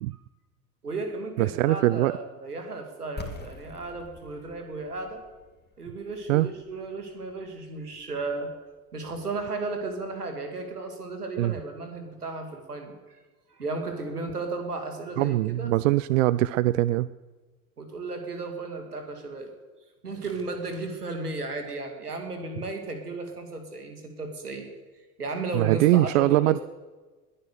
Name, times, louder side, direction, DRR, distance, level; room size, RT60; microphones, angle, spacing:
voice 1, 0.8-5.2 5.8-8.5 8.9-13.2 13.5-15.7 17.8-19.5 20.0-24.7 25.2-26.6, right 3 dB, 80° right, 6 dB, 2.4 m, -34 dB
voice 2, 1.4-2.1 6.3-6.5 11.4-11.5 15.2-17.1 25.5-26.6, right 16 dB, 60° right, 18 dB, 0.5 m, -22 dB
sound 1, 3.2-8.9, left 4 dB, 20° left, 2.5 m, -46 dB
20.5 x 9.9 x 6.8 m, 1.3 s
figure-of-eight pair, 70°, 45 cm